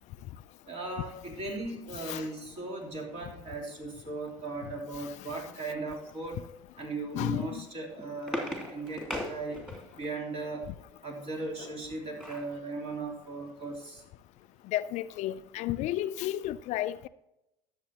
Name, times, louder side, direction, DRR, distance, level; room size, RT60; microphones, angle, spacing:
voice 1, 0.7-6.4 6.8-9.6 9.9-10.6 11.0-14.0, right 3 dB, 45° right, 3.3 m, -37 dB
voice 2, 2.0-2.3 5.0-5.1 7.1-7.6 11.6-11.7 14.7-17.1, left 14 dB, 50° left, 0.4 m, -33 dB
sound 1, 7.7-10.1 11.7-12.5 13.0-13.1 13.4-13.6, equal, 5° right, 2.7 m, -38 dB
12.5 x 7.7 x 2.9 m
hypercardioid pair, 80°, 15 cm